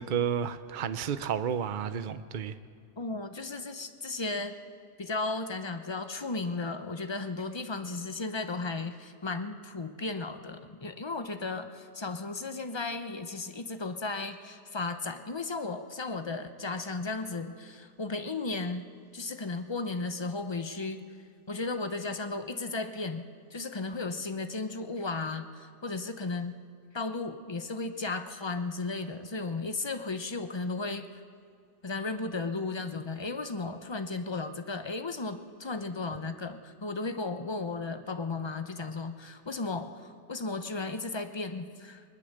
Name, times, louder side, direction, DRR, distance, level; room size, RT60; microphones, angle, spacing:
voice 1, 0.0-2.6, right 8 dB, 50° right, 12 dB, 0.6 m, -31 dB
voice 2, 3.0-4.6 5.0-18.9 19.1-21.0 21.5-23.2 23.5-26.6 26.9-31.2 31.8-42.0, left 3 dB, 40° left, 8 dB, 0.4 m, -35 dB
21.0 x 20.0 x 6.6 m, 2.3 s
omnidirectional pair, 1.8 m